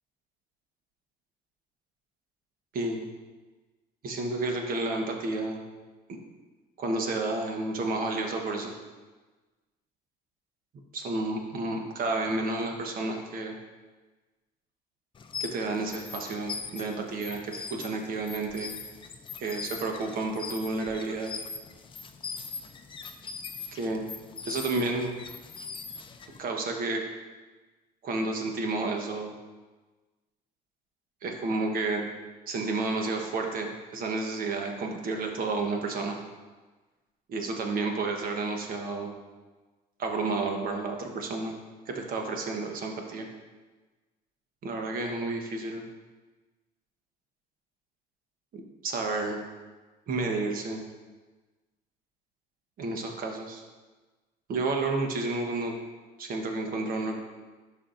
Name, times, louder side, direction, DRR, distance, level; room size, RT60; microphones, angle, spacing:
voice 1, 2.7-3.1 4.0-5.6 6.1-6.2 6.8-8.7 10.9-13.6 15.4-18.7 19.4-21.3 23.7-24.0 24.5-25.1 26.4-27.1 28.0-29.3 31.2-32.1 32.5-36.2 37.3-39.1 40.0-41.5 41.9-43.3 44.6-45.8 48.5-49.4 50.1-50.8 52.8-53.6 54.5-55.7 56.2-57.2, right 3 dB, 60° right, 3 dB, 1.2 m, -31 dB
sound 1, 15.1-26.4, left 5 dB, 30° left, 0.5 m, -41 dB
11.0 x 5.5 x 2.6 m, 1.3 s
cardioid pair, 110°, 17 cm